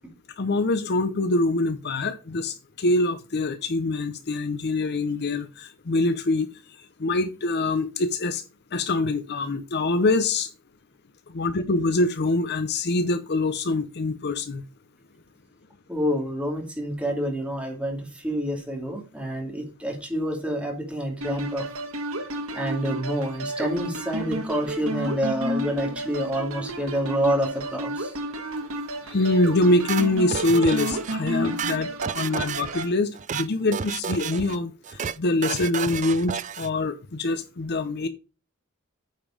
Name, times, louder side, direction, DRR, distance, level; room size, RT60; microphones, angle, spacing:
voice 1, 0.4-6.5 7.0-8.4 8.7-10.5 11.3-14.6 29.1-34.7 35.2-38.1, left 2 dB, 50° left, 0.7 m, -24 dB
voice 2, 15.9-21.6 22.5-28.1, equal, 5° right, 2.6 m, -28 dB
sound 1, 21.2-32.9, right 1 dB, 80° right, 1.7 m, -32 dB
sound 2, 29.9-31.1 31.4-32.8 33.1-33.5 33.7-34.6 34.8-35.2 35.4-36.7, right 7 dB, 35° right, 0.4 m, -31 dB
8.9 x 5.2 x 5.0 m
head